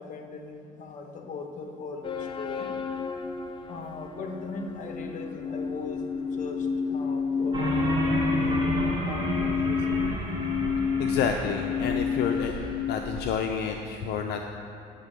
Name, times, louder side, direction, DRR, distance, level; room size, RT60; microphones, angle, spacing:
voice 1, 0.0-2.7 3.7-10.1, left 4 dB, 50° left, 4 dB, 1.0 m, -40 dB
sound 1, 2.0-13.0, left 6 dB, 30° left, 0.5 m, -30 dB
sound 2, 7.5-13.2, right 1 dB, 25° right, 1.7 m, -31 dB
voice 2, 11.0-12.5 12.9-14.4, left 7 dB, 80° left, 3 dB, 0.5 m, -29 dB
8.8 x 3.6 x 6.7 m, 2.7 s
cardioid pair, 110°, 17 cm